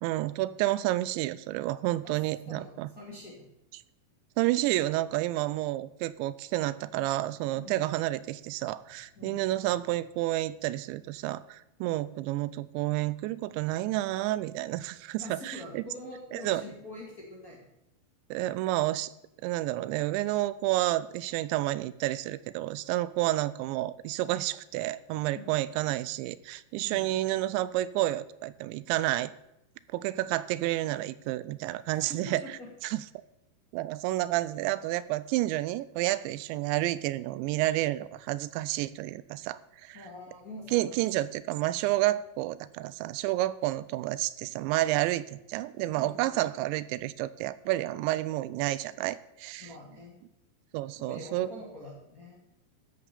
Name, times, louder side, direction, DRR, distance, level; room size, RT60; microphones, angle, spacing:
voice 1, 0.0-2.9 4.4-15.8 16.3-16.6 18.3-19.1 19.4-29.3 29.9-32.4 32.8-33.0 33.7-40.0 40.7-49.7 50.7-51.5, right 16 dB, 85° right, 17 dB, 2.9 m, -30 dB
voice 2, 2.0-3.5 7.5-7.9 9.1-9.4 15.1-17.7 25.3-25.6 26.8-27.2 31.9-32.7 39.9-41.3 45.9-46.5 49.6-50.1 50.9-52.4, left 1 dB, 35° left, -3 dB, 1.6 m, -45 dB
13.5 x 6.6 x 6.8 m, 0.85 s
omnidirectional pair, 5.1 m